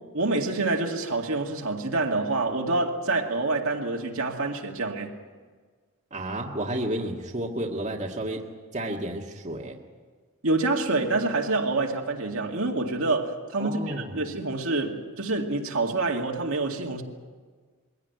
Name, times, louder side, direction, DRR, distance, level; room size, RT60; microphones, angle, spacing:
voice 1, 0.1-5.1 10.4-17.0, right 2 dB, 65° right, 2.2 m, -27 dB
voice 2, 6.1-8.4 8.7-9.8 13.6-14.2, right 1 dB, 30° right, 1.8 m, -31 dB
22.5 x 16.5 x 9.3 m
head